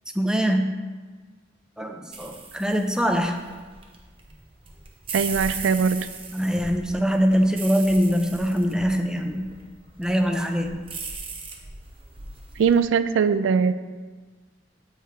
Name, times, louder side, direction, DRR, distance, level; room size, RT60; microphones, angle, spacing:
voice 1, 0.1-0.8 1.8-3.4 6.3-9.5 10.0-10.8, equal, 5° right, 5 dB, 0.4 m, -23 dB
sound 1, 2.1-12.8, right 4 dB, 30° right, 0.7 m, -38 dB
voice 2, 5.1-6.1 12.6-13.7, right 6 dB, 80° right, 13 dB, 0.3 m, -21 dB
8.1 x 4.8 x 3.4 m, 1.4 s
head